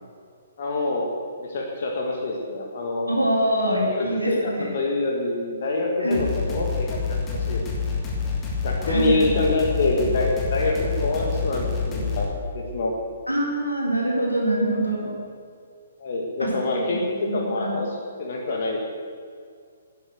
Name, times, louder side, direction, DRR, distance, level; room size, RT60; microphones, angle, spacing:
voice 1, 0.6-1.1 1.4-3.1 3.8-7.6 8.6-12.9 16.0-18.8, left 2 dB, 45° left, -1 dB, 1.9 m, -26 dB
voice 2, 3.1-4.7 6.0-6.3 8.9-9.3 13.3-15.1 16.4-16.5 17.2-17.8, right 1 dB, 90° left, -3 dB, 3.9 m, -24 dB
sound 1, 6.1-12.3, left 5 dB, 15° left, 2.2 m, -27 dB
11.5 x 9.8 x 8.0 m, 2.2 s
figure-of-eight pair, 125°, 0 cm